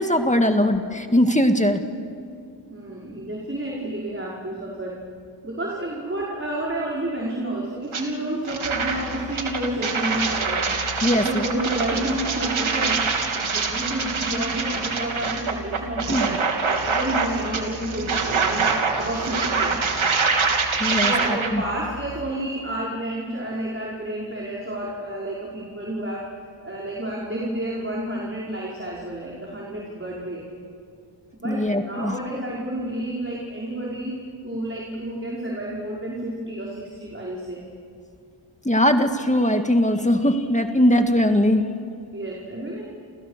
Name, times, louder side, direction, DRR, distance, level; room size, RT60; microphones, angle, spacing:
voice 1, 0.0-1.9 11.0-11.4 16.1-16.3 20.8-21.6 31.4-32.2 38.7-41.7, left 1 dB, 15° left, 6 dB, 1.9 m, -20 dB
voice 2, 2.7-5.0 5.4-10.6 11.1-18.6 19.0-19.7 20.9-26.3 26.6-30.4 31.4-37.6 42.1-42.8, right 1 dB, 25° right, -4 dB, 5.5 m, -30 dB
sound 1, 7.9-8.0 8.4-21.5, right 4 dB, 80° right, 3.0 m, -25 dB
sound 2, 8.6-22.3, left 3 dB, 40° left, 2.5 m, -41 dB
29.5 x 28.5 x 6.7 m, 2.4 s
wide cardioid pair, 70°, 47 cm